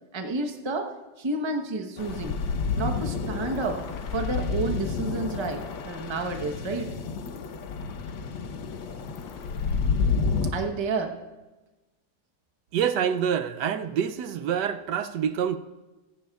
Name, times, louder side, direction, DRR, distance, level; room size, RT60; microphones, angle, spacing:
voice 1, 0.1-0.9 1.2-2.3 2.7-3.8 4.1-6.9 10.5-11.2, right 3 dB, 25° right, 0.6 m, -30 dB
sound 1, 2.0-10.5, left 5 dB, 85° left, 1.7 m, -30 dB
voice 2, 12.7-15.6, right 8 dB, 70° right, 1.1 m, -26 dB
25.5 x 10.5 x 2.3 m
omnidirectional pair, 2.0 m